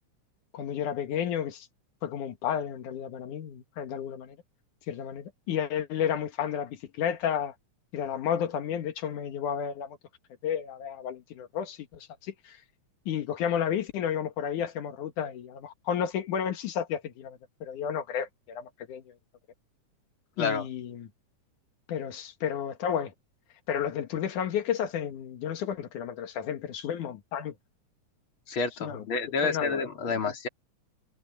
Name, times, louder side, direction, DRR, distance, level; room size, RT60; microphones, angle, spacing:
voice 1, 0.5-1.7 2.0-4.4 4.9-7.5 7.9-10.0 10.4-12.6 13.1-19.1 20.4-21.1 21.9-23.1 23.7-27.5 28.8-29.0 29.4-29.8 30.1-30.2, left 8 dB, 90° left, 3.1 m, -32 dB
voice 2, 28.5-30.5, left 4 dB, 45° left, 3.7 m, -29 dB
omnidirectional pair, 3.4 m